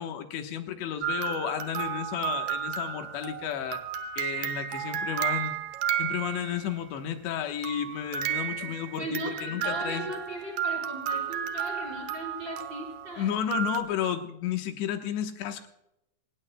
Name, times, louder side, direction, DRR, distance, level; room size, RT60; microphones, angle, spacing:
voice 1, 0.0-3.8 4.2-5.6 6.0-10.1 13.2-15.7, left 9 dB, 80° left, 6 dB, 3.4 m, -32 dB
sound 1, 1.0-6.8 7.6-13.8, right 8 dB, 70° right, 2.1 m, -33 dB
voice 2, 8.9-13.3, right 1 dB, 25° right, -1 dB, 4.9 m, -37 dB
27.0 x 18.0 x 2.2 m, 0.87 s
omnidirectional pair, 5.1 m